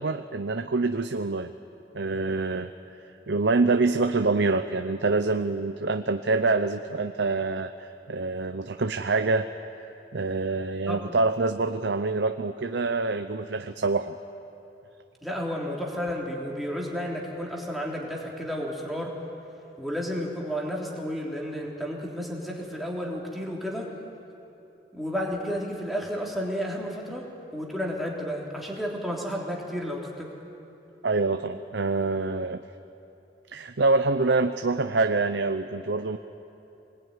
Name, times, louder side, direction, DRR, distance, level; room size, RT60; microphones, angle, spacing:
voice 1, 0.0-1.5 1.9-2.7 3.3-9.5 10.1-14.2 31.0-32.6 33.5-36.2, right 3 dB, 75° right, 8 dB, 0.7 m, -26 dB
voice 2, 15.2-19.2 19.8-23.9 24.9-30.3, equal, ahead, -3 dB, 3.5 m, -32 dB
25.5 x 20.5 x 9.7 m, 2.9 s
head